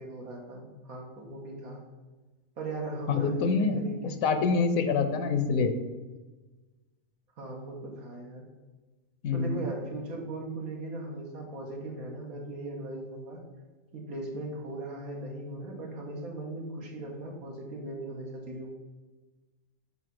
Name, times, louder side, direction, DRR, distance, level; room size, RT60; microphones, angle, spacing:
voice 1, 0.0-1.8 2.6-4.6 7.4-8.4 9.3-13.4 13.9-18.7, right 2 dB, 80° right, 0 dB, 1.7 m, -38 dB
voice 2, 3.1-3.8 4.2-5.7 9.2-9.6, left 5 dB, 75° left, 8 dB, 1.1 m, -26 dB
8.0 x 2.8 x 5.9 m, 1.2 s
omnidirectional pair, 1.5 m